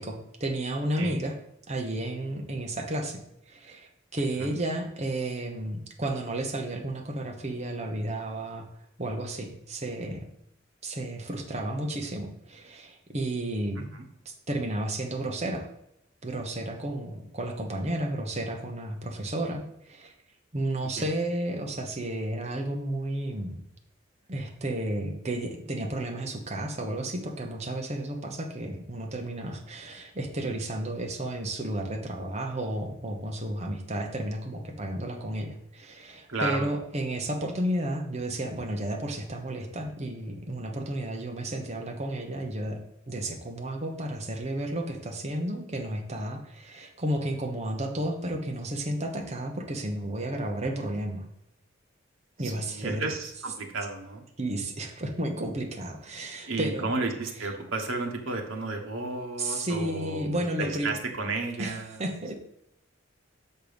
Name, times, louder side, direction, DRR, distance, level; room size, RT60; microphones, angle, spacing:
voice 1, 0.0-1.3 1.7-3.2 3.5-8.7 9.0-10.3 10.8-13.9 14.2-15.7 16.2-20.1 20.5-23.6 24.3-42.8 43.1-51.3 52.4-53.0 54.4-56.9 57.4-57.5 59.4-60.9 61.6-62.4, right 1 dB, 35° right, 3 dB, 1.0 m, -32 dB
voice 2, 36.3-36.7 52.4-54.2 56.4-62.0, right 3 dB, 85° right, 2 dB, 1.2 m, -33 dB
6.6 x 4.4 x 5.1 m, 0.78 s
head